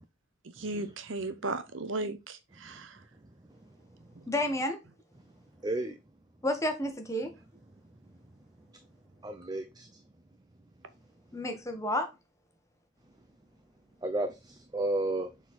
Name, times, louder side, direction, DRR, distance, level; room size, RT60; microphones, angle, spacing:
voice 1, 0.6-3.0, right 2 dB, 70° right, 0.9 m, -36 dB
voice 2, 4.3-4.8 6.4-7.3 11.3-12.1, left 1 dB, 15° left, 1.2 m, -30 dB
voice 3, 5.6-6.0 9.2-10.0 14.0-15.3, right 1 dB, 20° right, 0.5 m, -32 dB
7.0 x 4.1 x 4.1 m
head